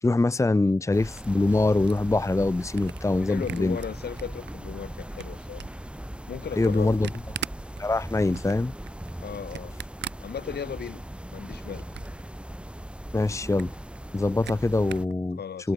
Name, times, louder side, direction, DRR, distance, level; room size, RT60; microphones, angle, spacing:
voice 1, 0.0-3.8 6.6-7.1 7.8-8.7 13.1-13.7 14.1-15.4 15.6-15.7, left 2 dB, 15° left, 0.9 m, -24 dB
sound 1, 0.9-15.1, right 1 dB, 5° right, 3.4 m, -39 dB
Camera, 0.9-4.5 4.9-11.0 11.4-12.3 12.6-12.7 13.0-13.1 13.4-15.2, right 10 dB, 75° right, 1.9 m, -41 dB
voice 2, 3.2-5.7 6.3-7.1 9.2-9.8 10.2-11.0 11.3-11.9 15.4-15.7, left 7 dB, 65° left, 4.4 m, -36 dB
cardioid pair, 65°, 18 cm